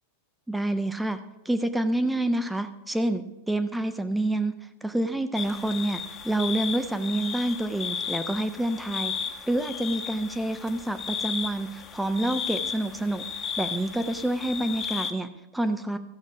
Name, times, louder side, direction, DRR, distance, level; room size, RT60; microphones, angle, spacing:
voice 1, 0.5-1.2 1.5-4.5 4.8-9.1 9.5-13.2 13.6-16.0, right 1 dB, 5° right, 9 dB, 0.5 m, -28 dB
sound 1, 5.3-15.1, left 6 dB, 30° left, 1.0 m, -34 dB
14.0 x 6.2 x 5.0 m, 1.0 s
figure-of-eight pair, 90°, 0 cm